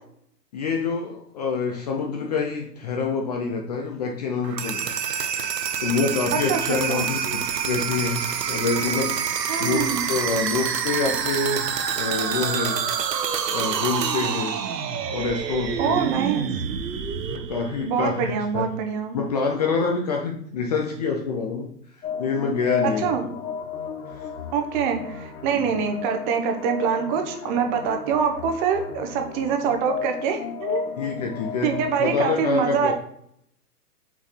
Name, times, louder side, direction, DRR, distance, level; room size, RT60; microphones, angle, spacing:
voice 1, 0.5-5.0 5.8-9.3 9.6-11.7 11.9-12.8 13.5-14.6 15.1-16.0 17.4-18.6 19.1-21.7 22.2-23.1 24.1-24.3 25.5-25.7 31.0-31.7 32.0-32.9, left 4 dB, 25° left, 1 dB, 0.5 m, -26 dB
sound 1, 4.4-18.3, right 7 dB, 80° right, 0.9 m, -27 dB
voice 2, 6.3-7.0 9.5-10.0 15.8-16.5 17.8-19.2 22.8-23.3 24.5-31.1 31.6-32.9, right 7 dB, 30° right, 5 dB, 0.9 m, -25 dB
sound 2, 22.0-32.0, left 6 dB, 60° left, 1.4 m, -33 dB
5.9 x 4.0 x 4.1 m, 0.68 s
hypercardioid pair, 125°, 48 cm